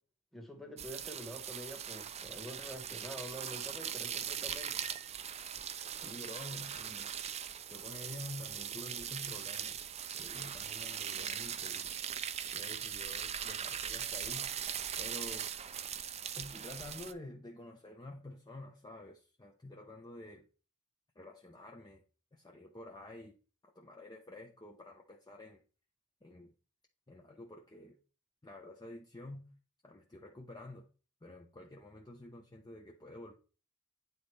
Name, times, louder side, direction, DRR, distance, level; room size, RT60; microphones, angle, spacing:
voice 1, 0.3-4.7, equal, ahead, 1.5 m, -46 dB
sound 1, 0.8-17.1, right 8 dB, 30° right, 0.4 m, -40 dB
voice 2, 6.0-7.1 7.7-9.8 10.2-11.9 12.5-14.5 15.0-15.5 16.3-20.5 21.2-22.0 22.3-23.4 23.6-25.6 26.2-26.5 27.1-28.0 28.4-29.4 29.8-30.9 31.2-33.4, left 1 dB, 20° left, 0.7 m, -49 dB
9.5 x 4.0 x 3.3 m
head